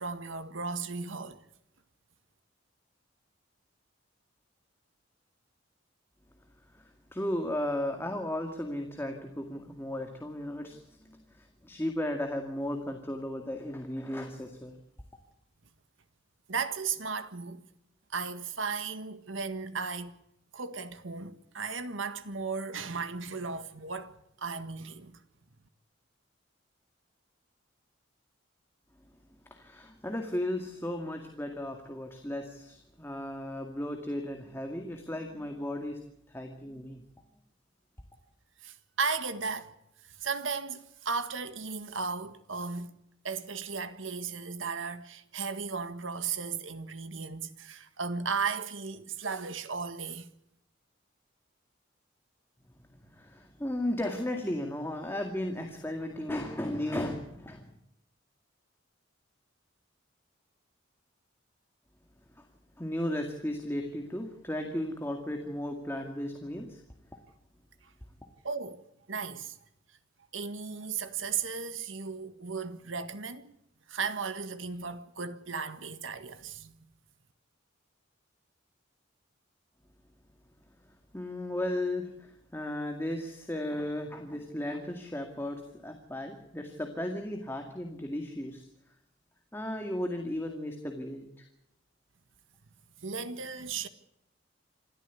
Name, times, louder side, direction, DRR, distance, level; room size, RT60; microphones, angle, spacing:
voice 1, 0.0-1.4 16.5-17.6 18.1-20.1 20.5-25.2 38.6-39.7 40.0-43.0 43.2-50.3 67.8-67.9 68.4-69.6 70.3-73.5 73.9-76.9 93.0-93.9, right 5 dB, 80° right, 1.7 m, -35 dB
voice 2, 6.7-14.8 29.5-36.0 36.3-37.0 53.0-57.7 62.4-62.5 62.8-66.8 67.1-67.2 80.8-88.7 89.5-91.3, left 1 dB, 10° left, 2.1 m, -35 dB
27.0 x 14.0 x 8.4 m
head